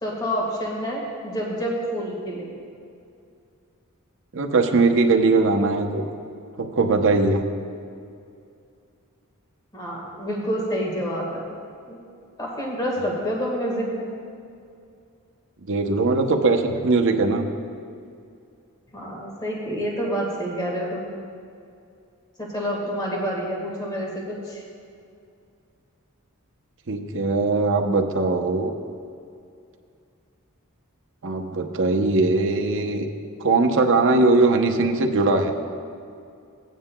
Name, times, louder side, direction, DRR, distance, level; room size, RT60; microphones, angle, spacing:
voice 1, 0.0-2.5 9.7-11.6 11.9-12.0 12.4-14.1 18.9-21.1 22.4-24.6, equal, 20° left, -3 dB, 1.6 m, -28 dB
voice 2, 4.3-6.1 6.6-7.5 15.7-17.4 26.9-28.7 31.2-33.1 33.4-35.5, right 3 dB, 60° right, 4 dB, 0.8 m, -20 dB
16.0 x 9.2 x 2.2 m, 2.4 s
head